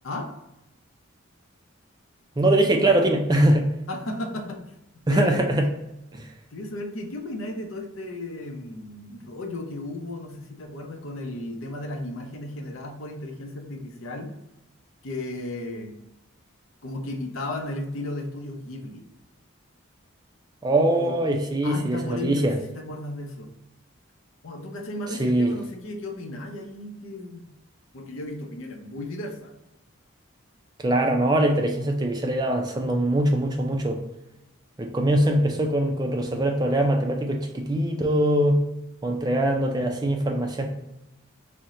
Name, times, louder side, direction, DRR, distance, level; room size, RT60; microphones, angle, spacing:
voice 1, 2.4-3.6 5.1-5.7 6.1-6.3 20.6-22.5 25.2-25.5 30.8-34.0 34.8-38.6 39.0-40.7, right 1 dB, 20° right, 3 dB, 0.4 m, -22 dB
voice 2, 3.9-4.6 5.1-5.7 6.5-14.3 15.0-15.9 16.8-19.0 21.0-21.2 21.6-23.5 24.4-27.4 27.9-29.5, left 1 dB, 70° left, 3 dB, 0.6 m, -34 dB
4.3 x 2.1 x 3.7 m, 0.90 s
head